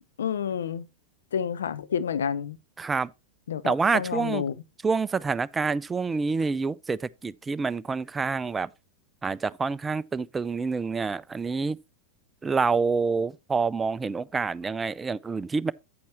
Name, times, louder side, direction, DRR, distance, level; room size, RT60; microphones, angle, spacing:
voice 1, 0.2-0.9 1.3-2.6 3.5-4.5, left 7 dB, 65° left, 0.6 m, -29 dB
voice 2, 2.8-3.1 3.6-4.4 4.8-8.7 9.2-11.8 12.4-15.7, right 4 dB, 15° right, 0.4 m, -27 dB
8.7 x 8.5 x 2.9 m
figure-of-eight pair, 90°, 0 cm